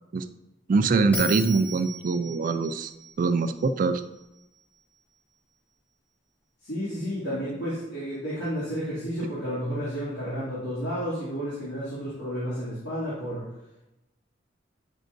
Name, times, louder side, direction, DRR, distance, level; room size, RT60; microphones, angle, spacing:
voice 1, 0.7-2.9 3.2-4.0, right 4 dB, 50° right, 10 dB, 0.4 m, -23 dB
Bell, 1.1-4.4, equal, 10° left, 1.1 m, -38 dB
voice 2, 6.6-13.5, equal, 80° left, -10 dB, 2.3 m, -31 dB
9.1 x 5.3 x 2.6 m, 0.95 s
head